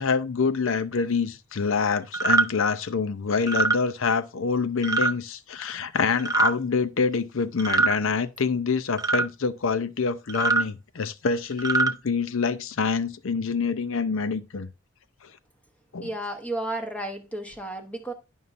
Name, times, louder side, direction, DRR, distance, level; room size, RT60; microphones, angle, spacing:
voice 1, 0.0-14.7 15.9-16.1, left 5 dB, 65° left, 0.6 m, -26 dB
sound 1, 2.1-2.5 3.4-3.8 4.8-5.1 6.2-6.5 7.6-8.0 9.0-9.3 10.3-10.6 11.5-11.9, right 4 dB, 15° right, 0.5 m, -22 dB
voice 2, 16.0-18.1, right 1 dB, 5° left, 1.0 m, -32 dB
11.0 x 5.4 x 2.5 m
head